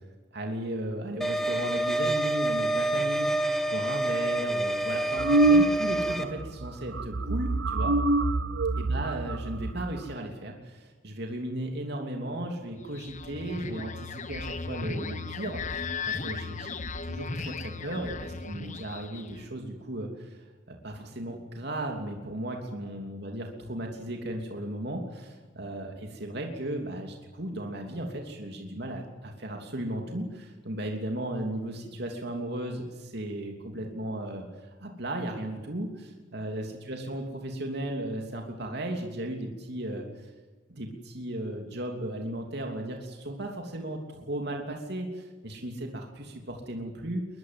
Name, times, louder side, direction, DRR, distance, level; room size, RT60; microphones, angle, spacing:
voice 1, 0.3-3.3 3.7-7.9 8.7-16.7 17.0-40.3 40.7-47.3, right 1 dB, 60° right, 2 dB, 3.1 m, -35 dB
sound 1, 1.2-6.2, right 1 dB, ahead, 1.8 m, -28 dB
sound 2, 5.2-6.1 6.4-6.7 6.9-10.1, right 2 dB, 80° right, 0.8 m, -25 dB
sound 3, 12.8-19.5, left 4 dB, 40° left, 1.3 m, -36 dB
22.5 x 22.0 x 7.8 m, 1.3 s
head